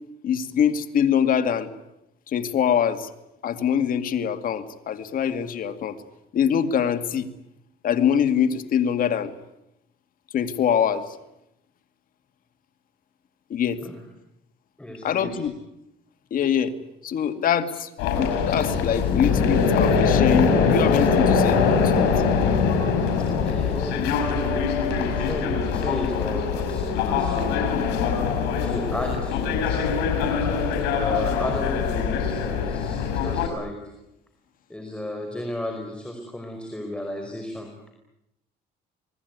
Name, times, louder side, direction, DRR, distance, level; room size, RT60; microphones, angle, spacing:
voice 1, 0.2-1.7 2.3-3.1 3.4-6.0 6.3-7.3 7.8-9.3 10.3-11.0 13.5-13.8 15.0-15.5 16.3-16.7 17.0-22.1, left 8 dB, 55° left, 9 dB, 2.3 m, -24 dB
voice 2, 14.8-15.4 23.2-27.8 28.6-29.8 30.9-33.8 34.7-37.7, left 1 dB, 5° left, 2 dB, 5.2 m, -34 dB
sound 1, 18.0-33.5, left 5 dB, 90° left, 6.4 m, -23 dB
28.0 x 20.5 x 9.6 m, 0.86 s
cardioid pair, 110°, 17 cm